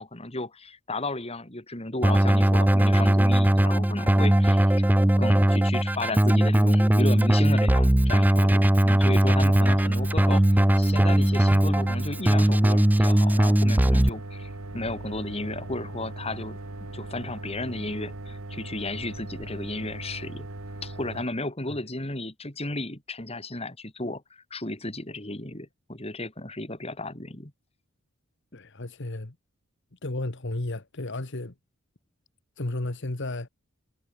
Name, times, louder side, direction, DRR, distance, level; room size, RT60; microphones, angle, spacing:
voice 1, 0.0-16.6 16.9-20.5 20.8-27.5, left 2 dB, 25° left, 3.3 m, -34 dB
Keyboard (musical), 2.0-14.1, right 1 dB, 10° right, 0.5 m, -20 dB
sound 1, 9.3-21.2, right 2 dB, 70° right, 1.7 m, -39 dB
voice 2, 28.5-29.4 29.9-31.5 32.6-33.5, left 2 dB, 55° left, 1.5 m, -33 dB
head